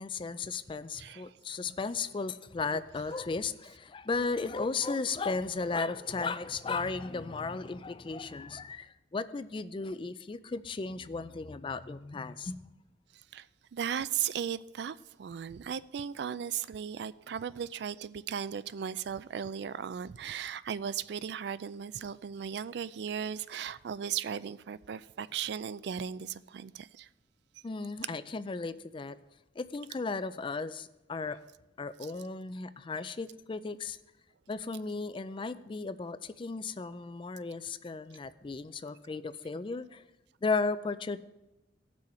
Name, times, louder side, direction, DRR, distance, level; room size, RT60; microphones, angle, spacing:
voice 1, 0.0-12.6 27.6-29.2 29.6-31.4 31.8-34.0 34.5-40.0 40.4-41.2, left 4 dB, 25° left, 0.4 m, -35 dB
voice 2, 1.0-1.3 13.3-13.5 13.7-27.1, right 8 dB, 60° right, 0.3 m, -36 dB
17.5 x 6.2 x 4.3 m
head